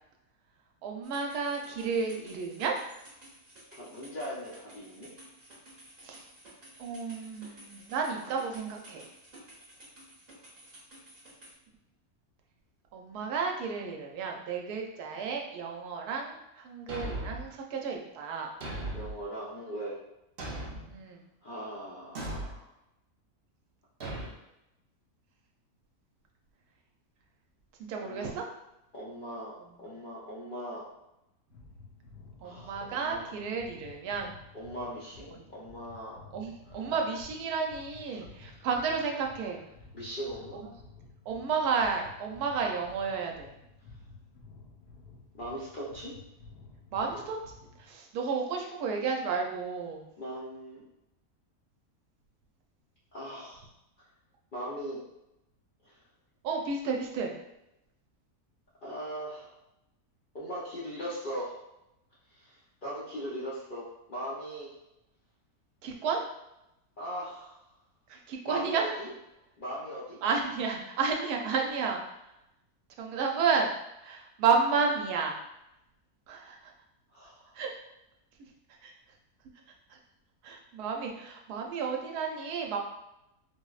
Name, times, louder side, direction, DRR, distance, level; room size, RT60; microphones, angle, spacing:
voice 1, 0.8-2.8 6.0-6.3 6.8-9.1 12.9-18.5 20.9-21.2 27.8-28.4 29.7-29.9 32.4-34.3 35.3-35.5 36.3-39.6 40.5-40.7 41.3-43.5 46.9-47.4 47.8-50.0 56.4-57.3 65.8-66.2 68.1-68.9 70.2-72.0 73.0-73.7 74.0-75.4 76.3-76.7 77.5-77.7 78.8-78.9 79.9-80.0 80.4-82.8, right 5 dB, 85° right, 1 dB, 1.1 m, -32 dB
sound 1, 1.0-11.5, right 1 dB, 30° right, 0.9 m, -53 dB
voice 2, 3.7-5.1 18.9-19.9 21.4-22.7 28.0-28.3 28.9-29.5 29.8-30.8 32.4-33.3 34.5-36.2 38.5-38.6 39.9-40.6 45.4-46.1 50.2-50.8 53.1-53.6 54.0-54.1 54.5-55.0 55.8-55.9 58.8-59.5 60.3-61.6 62.3-64.7 67.0-67.6 68.4-69.1 69.6-70.2 77.1-77.5, equal, 55° left, -8 dB, 0.6 m, -39 dB
Thump thud, 16.9-17.5 18.6-19.2 20.4-20.9 22.1-22.6 24.0-24.3, right 1 dB, 55° right, 0.6 m, -37 dB
sound 2, 31.5-47.9, left 3 dB, 85° left, 1.1 m, -53 dB
4.2 x 2.0 x 2.3 m, 0.88 s
omnidirectional pair, 1.6 m